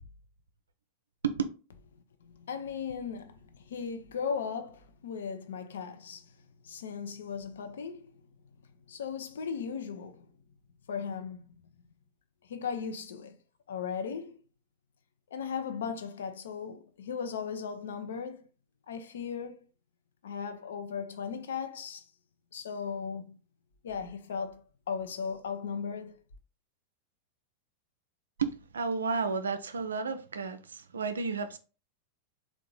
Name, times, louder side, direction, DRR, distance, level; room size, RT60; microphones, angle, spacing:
voice 1, 2.3-6.3 6.6-8.1 8.9-10.2 10.9-11.4 12.5-13.4 13.7-14.4 15.3-18.5 18.9-19.5 20.2-22.0 22.5-23.4 23.8-24.6 24.9-26.2, left 6 dB, 65° left, 0.5 m, -37 dB
voice 2, 28.4-31.6, right 5 dB, 70° right, 0.4 m, -32 dB
3.6 x 2.4 x 3.8 m
figure-of-eight pair, 90°, 0 cm